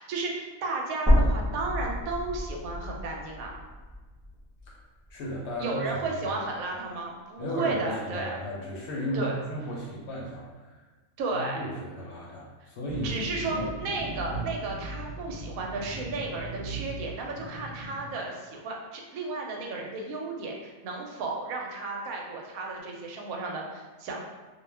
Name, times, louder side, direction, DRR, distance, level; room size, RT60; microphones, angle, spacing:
voice 1, 0.0-3.6 5.6-8.4 9.1-9.4 11.2-11.6 13.0-24.2, right 3 dB, 85° right, 0 dB, 1.0 m, -33 dB
sound 1, 1.1-5.2 5.6-5.7 7.1-7.2, equal, 10° right, 0.4 m, -28 dB
voice 2, 4.6-5.9 6.2-6.4 7.4-10.9 11.3-13.6, equal, 65° left, -4 dB, 0.8 m, -35 dB
sound 2, 12.9-18.1, right 2 dB, 60° right, 0.8 m, -38 dB
2.4 x 2.1 x 3.2 m, 1.3 s
omnidirectional pair, 1.4 m